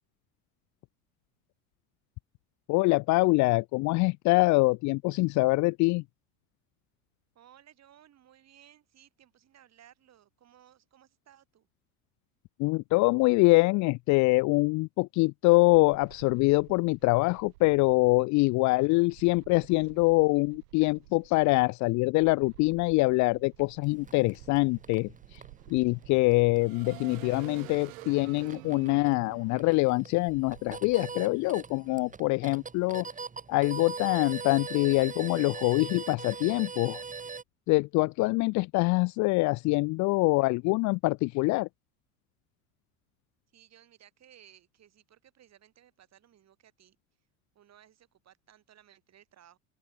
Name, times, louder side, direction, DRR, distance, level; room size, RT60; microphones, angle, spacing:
voice 1, 2.7-6.0 12.6-25.4 25.7-33.1 33.5-37.0 37.7-41.7, left 24 dB, 45° left, 0.4 m, -24 dB
voice 2, 7.3-11.7 43.5-47.0 47.5-49.6, right 11 dB, 40° right, 5.5 m, -59 dB
sound 1, 15.7-18.0 19.1-21.7 22.2-31.0, right 24 dB, 80° right, 1.2 m, -50 dB
sound 2, 23.8-37.4, right 5 dB, 20° right, 2.6 m, -42 dB
open air
supercardioid pair, 110°, 41 cm